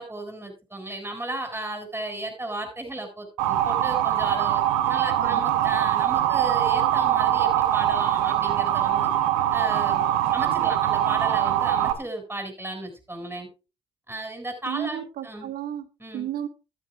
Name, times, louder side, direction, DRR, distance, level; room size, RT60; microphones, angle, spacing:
voice 1, 0.0-9.1 9.5-10.1 10.3-13.5 14.1-15.0 15.2-15.5 16.0-16.3, right 1 dB, 15° right, 7.2 m, -35 dB
Motor vehicle (road) / Siren, 3.4-11.9, right 11 dB, 85° right, 1.2 m, -23 dB
voice 2, 14.7-16.5, right 10 dB, 70° right, 1.6 m, -33 dB
13.0 x 11.0 x 3.6 m
hypercardioid pair, 45°, 16 cm